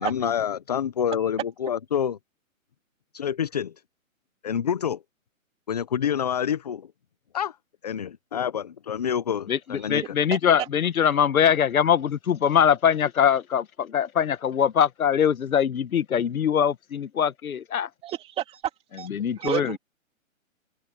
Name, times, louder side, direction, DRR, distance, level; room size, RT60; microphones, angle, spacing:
voice 1, 0.0-2.2 3.1-3.7 4.4-5.0 5.7-6.9 7.3-7.6 7.8-10.1, left 8 dB, 30° left, 0.5 m, -27 dB
voice 2, 9.5-17.9 19.1-19.8, left 8 dB, 80° left, 1.3 m, -22 dB
voice 3, 18.0-18.6 19.0-19.1 19.4-19.8, right 12 dB, 15° right, 2.6 m, -30 dB
hypercardioid pair, 160°, 41 cm